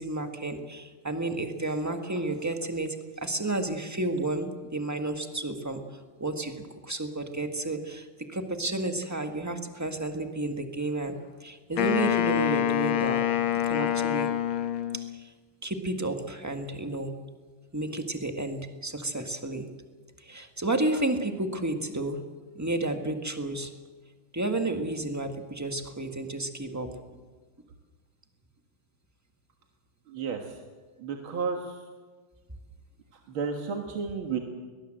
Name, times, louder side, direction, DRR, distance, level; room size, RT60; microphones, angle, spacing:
voice 1, 0.0-5.8 6.2-13.2 13.5-14.3 14.9-15.3 15.6-17.1 17.7-19.7 20.2-22.2 22.5-23.7 24.3-27.2, right 2 dB, 10° right, 5 dB, 1.5 m, -31 dB
Wind instrument woodwind instrument, 11.8-15.2, left 11 dB, 85° left, 1.9 m, -26 dB
voice 2, 30.1-30.6 31.0-31.8 33.3-34.4, right 5 dB, 75° right, 3 dB, 2.4 m, -32 dB
22.5 x 19.5 x 7.8 m, 1.4 s
omnidirectional pair, 2.3 m